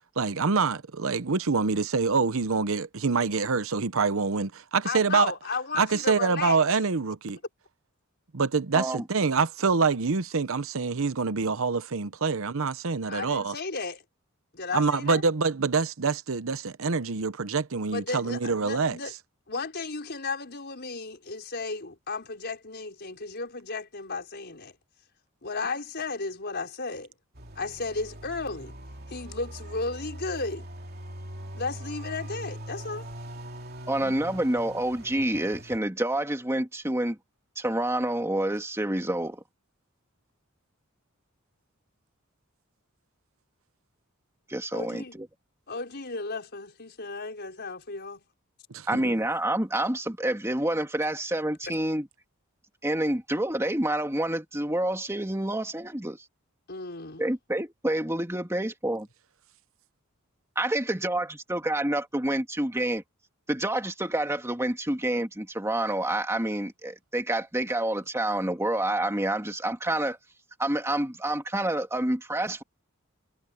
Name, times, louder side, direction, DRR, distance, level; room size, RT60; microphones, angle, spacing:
voice 1, 0.2-5.3 5.8-7.4 8.3-13.5 14.7-19.0 48.7-49.1, right 4 dB, 65° right, 0.8 m, -26 dB
voice 2, 4.8-6.6 13.1-14.0 14.5-15.2 17.9-19.1 19.5-24.7 25.4-27.1 27.5-28.7 29.1-30.6 31.6-33.1 44.7-45.2 45.7-48.2 56.7-57.2, left 4 dB, 50° left, 5.3 m, -34 dB
voice 3, 8.7-9.0 33.9-37.2 37.6-39.4 44.5-45.3 48.9-52.1 52.8-56.2 57.2-59.1 60.6-63.0 63.5-70.2 70.6-72.6, right 1 dB, 15° right, 2.3 m, -28 dB
sound 1, 27.4-35.8, right 1 dB, 45° right, 3.0 m, -41 dB
head